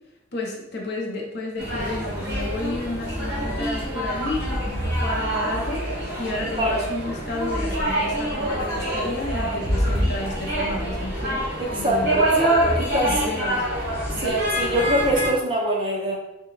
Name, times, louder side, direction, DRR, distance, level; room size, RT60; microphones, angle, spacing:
voice 1, 0.3-5.8 6.2-11.4 11.7-12.2 13.0-13.6, left 1 dB, 50° left, -1 dB, 0.7 m, -31 dB
sound 1, 1.6-15.3, right 1 dB, 50° right, 1.1 m, -25 dB
voice 2, 11.6-13.2 14.2-16.2, right 1 dB, 25° right, -1 dB, 0.6 m, -24 dB
3.7 x 2.3 x 3.0 m, 0.90 s
head